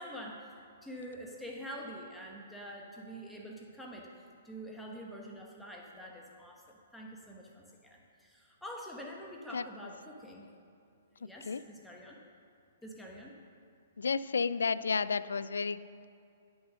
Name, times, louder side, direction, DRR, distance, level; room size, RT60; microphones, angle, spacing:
voice 1, 0.0-4.1 4.4-10.5 11.1-12.2 12.8-13.4, equal, 5° left, -2 dB, 1.1 m, -46 dB
voice 2, 11.2-11.6 14.0-16.0, left 5 dB, 80° left, 16 dB, 0.3 m, -32 dB
10.5 x 6.3 x 6.1 m, 2.5 s
hypercardioid pair, 125°, 0 cm